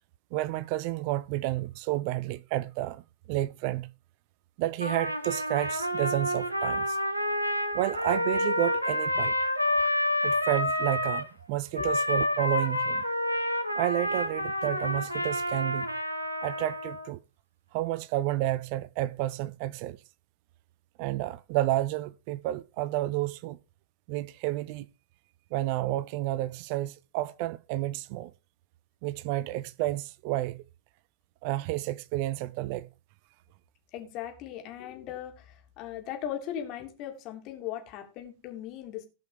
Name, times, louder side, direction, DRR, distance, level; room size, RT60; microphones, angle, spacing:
voice 1, 0.3-3.0 3.3-3.9 4.6-7.0 7.7-9.3 10.2-13.0 13.8-15.9 16.4-17.2 17.7-20.0 21.0-23.6 24.1-24.9 25.5-28.3 29.0-30.6 31.4-32.9, right 15 dB, 45° right, 0.6 m, -30 dB
Trumpet, 4.8-11.3 11.7-17.1, left 1 dB, 90° right, 1.3 m, -29 dB
voice 2, 33.9-39.0, left 10 dB, 40° left, 3.2 m, -38 dB
17.0 x 5.7 x 5.0 m
figure-of-eight pair, 90°, 0 cm